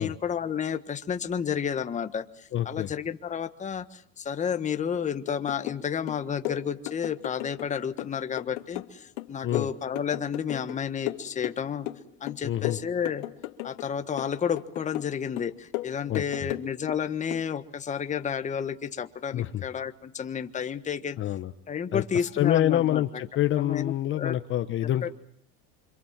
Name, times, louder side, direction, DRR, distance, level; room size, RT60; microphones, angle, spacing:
voice 1, 0.0-11.9 12.2-13.2 13.6-21.2 21.7-23.0 23.6-24.4 25.0-25.1, left 7 dB, 20° left, 9 dB, 1.5 m, -31 dB
voice 2, 2.5-2.9 9.4-9.7 12.4-12.8 16.1-16.5 19.3-19.6 21.2-21.5 21.9-25.1, left 12 dB, 40° left, 9 dB, 1.3 m, -27 dB
sound 1, 5.3-5.8 6.1-7.7 8.0-10.8 11.1-12.0 12.3-13.9 14.2-15.1 15.4-17.0 17.3-17.5, left 18 dB, 85° left, 2.5 m, -35 dB
27.0 x 26.0 x 7.5 m, 0.64 s
supercardioid pair, 135°, 33 cm